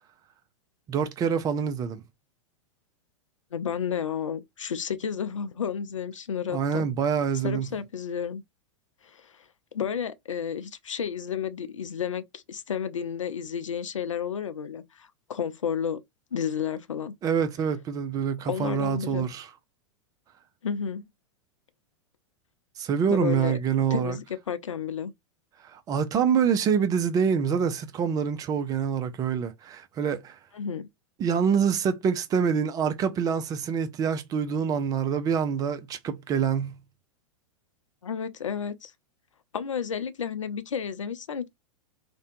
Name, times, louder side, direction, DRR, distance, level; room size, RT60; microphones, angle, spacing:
voice 1, 0.9-2.0 6.5-7.7 17.2-19.5 22.8-24.2 25.6-30.4 31.2-36.7, right 7 dB, 25° right, 0.4 m, -26 dB
voice 2, 3.5-6.8 7.4-8.4 9.0-9.3 9.7-16.0 16.3-17.2 18.5-19.3 20.6-21.0 23.1-23.6 23.9-25.1 30.5-30.9 38.0-38.9 39.5-41.5, left 7 dB, 80° left, 0.4 m, -31 dB
2.5 x 2.1 x 2.5 m
figure-of-eight pair, 95°, 16 cm